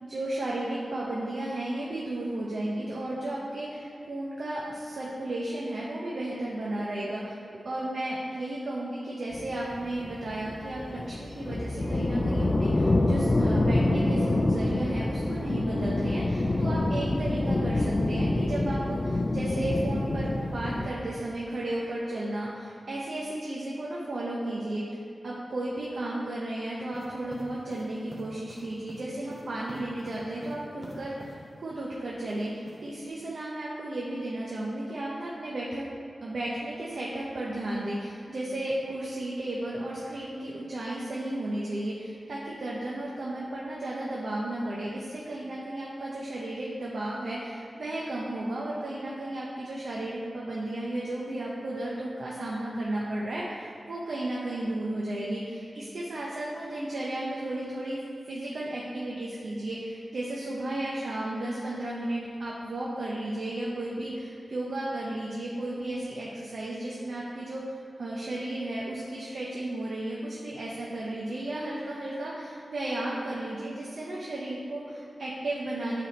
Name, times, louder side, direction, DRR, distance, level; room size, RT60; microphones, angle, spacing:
voice 1, 0.0-7.4 7.6-25.0 25.2-35.8 36.2-58.0 58.3-76.0, right 1 dB, 75° right, -5 dB, 0.8 m, -34 dB
sound 1, 9.3-20.9, left 2 dB, 35° left, 0.4 m, -27 dB
sound 2, 26.9-31.4 32.3-33.1, right 1 dB, 30° right, 0.9 m, -45 dB
8.9 x 3.5 x 4.2 m, 2.3 s
wide cardioid pair, 125°, 0 cm